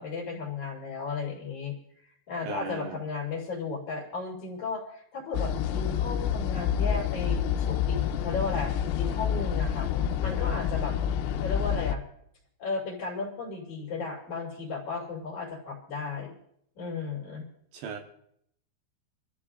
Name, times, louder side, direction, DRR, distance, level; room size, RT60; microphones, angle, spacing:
voice 1, 0.0-1.7 2.3-11.0 11.4-12.0 12.6-16.3 16.8-17.5, left 4 dB, 45° left, -2 dB, 3.3 m, -35 dB
voice 2, 2.5-3.0 17.7-18.0, right 6 dB, 75° right, 2 dB, 2.9 m, -37 dB
sound 1, 5.3-12.0, left 8 dB, 85° left, 3.1 m, -28 dB
26.5 x 13.5 x 2.5 m, 0.70 s
omnidirectional pair, 5.6 m